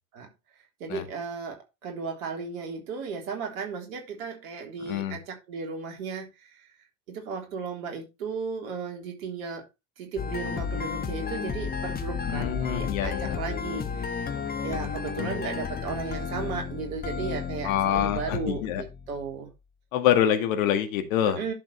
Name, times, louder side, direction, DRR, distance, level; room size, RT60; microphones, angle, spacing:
voice 1, 0.8-6.6 7.1-9.7 10.0-14.3 14.6-19.5 21.4-21.5, right 5 dB, 55° right, 3.6 m, -35 dB
voice 2, 4.8-5.2 12.3-13.4 15.2-15.4 17.6-18.8 19.9-21.4, left 10 dB, 55° left, 2.0 m, -26 dB
sound 1, 10.2-19.3, left 6 dB, 20° left, 1.4 m, -33 dB
11.0 x 7.0 x 3.3 m
figure-of-eight pair, 80°, 49 cm